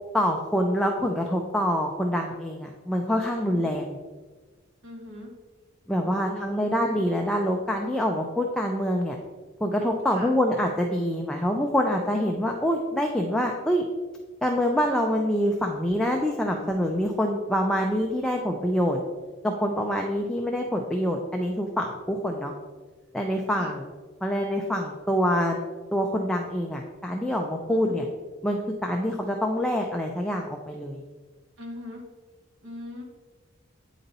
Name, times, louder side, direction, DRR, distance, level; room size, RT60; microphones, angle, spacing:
voice 1, 0.1-4.0 5.9-9.2 9.6-13.8 14.4-19.0 19.4-22.5 23.1-23.9 24.2-25.6 25.9-28.0 28.4-31.0, equal, 5° left, 1 dB, 0.4 m, -26 dB
voice 2, 3.4-3.7 4.8-5.3 6.0-7.0 10.1-10.3 23.5-23.7 27.7-28.0 31.6-32.0 32.6-33.0, left 1 dB, 70° right, -1 dB, 1.5 m, -40 dB
8.8 x 4.0 x 4.0 m, 1.3 s
head